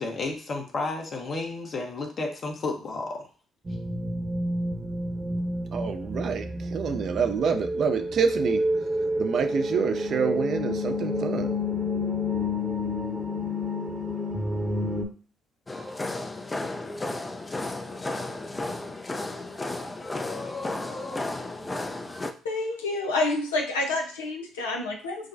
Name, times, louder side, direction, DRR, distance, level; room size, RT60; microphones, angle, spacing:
voice 1, 0.0-3.3, left 3 dB, 50° left, 2 dB, 1.1 m, -32 dB
sound 1, 3.6-15.0, left 1 dB, 30° right, 1.0 m, -29 dB
voice 2, 5.7-8.9 9.2-11.6, right 6 dB, 55° right, 6 dB, 0.6 m, -27 dB
sound 2, 15.7-22.3, left 2 dB, 25° left, 0.6 m, -33 dB
voice 3, 22.4-25.3, left 2 dB, 85° left, 1 dB, 0.7 m, -28 dB
6.2 x 2.3 x 2.6 m, 0.40 s
hypercardioid pair, 45°, 0 cm